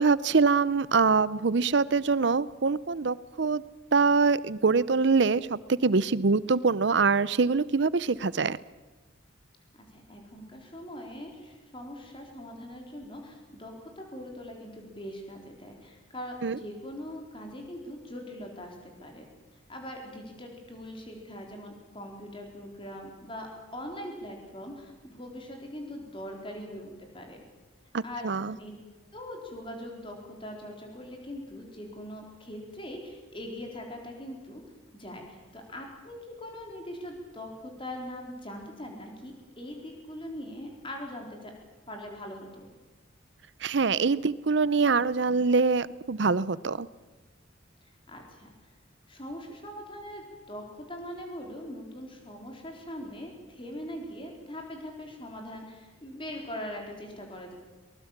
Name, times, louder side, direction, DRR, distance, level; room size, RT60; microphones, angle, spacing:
voice 1, 0.0-3.6 3.9-8.6 16.4-16.6 27.9-28.6 43.6-46.9, right 4 dB, 60° right, 19 dB, 0.6 m, -24 dB
voice 2, 9.9-19.2 19.7-27.4 28.0-28.7 29.1-34.6 34.9-41.5 41.9-42.7 48.1-48.5 49.1-57.5, left 1 dB, 25° left, 2 dB, 4.1 m, -41 dB
23.0 x 20.0 x 7.4 m, 1.2 s
head